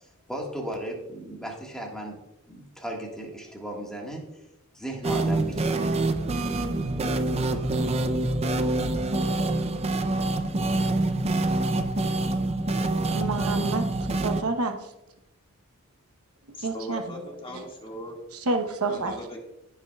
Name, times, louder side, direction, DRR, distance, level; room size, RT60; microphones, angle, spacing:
voice 1, 0.3-2.2 2.5-4.4 4.7-6.0, right 1 dB, 5° left, -1 dB, 1.6 m, -36 dB
sound 1, 5.0-14.4, right 2 dB, 30° right, 0.5 m, -26 dB
voice 2, 13.1-13.9 14.2-14.8 16.6-17.0 17.5-17.6 18.5-19.2, right 3 dB, 70° right, 6 dB, 1.0 m, -28 dB
voice 3, 16.5-18.2 18.8-19.4, equal, 25° left, -1 dB, 1.9 m, -39 dB
16.5 x 5.5 x 2.3 m, 0.92 s
head